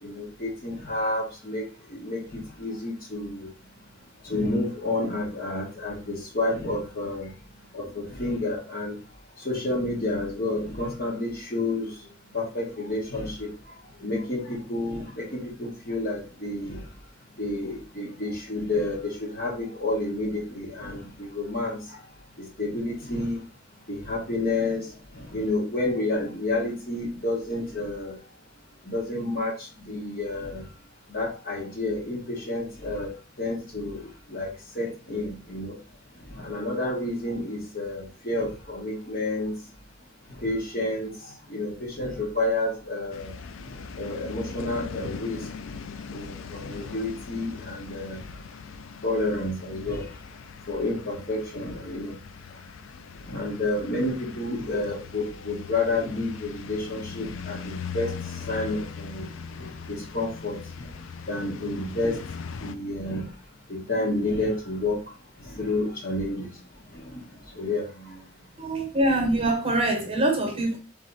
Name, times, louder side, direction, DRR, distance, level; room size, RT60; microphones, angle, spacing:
voice 1, 0.0-3.5 4.2-7.3 7.7-9.0 9.4-16.9 17.3-22.1 22.4-23.4 23.9-28.2 28.8-30.7 31.1-35.8 36.1-39.6 40.3-43.3 43.6-45.5 46.1-48.4 49.0-52.2 52.5-52.6 53.1-63.4 63.7-68.3, left 2 dB, 50° left, 1.6 m, -30 dB
sound 1, 43.1-62.8, left 6 dB, 85° left, 0.4 m, -40 dB
voice 2, 68.6-70.8, right 1 dB, 30° right, 1.0 m, -24 dB
3.4 x 3.4 x 3.9 m
head